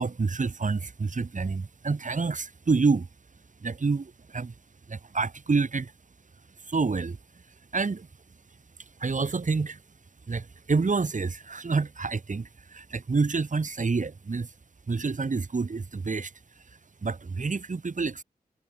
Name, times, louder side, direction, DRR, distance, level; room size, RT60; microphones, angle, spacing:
voice 1, 0.0-3.1 3.6-4.5 4.9-5.9 6.7-7.2 7.7-8.1 9.0-9.8 10.3-14.5 14.9-16.3 17.0-18.2, right 4 dB, 55° right, 1.5 m, -28 dB
cardioid pair, 45°, 16 cm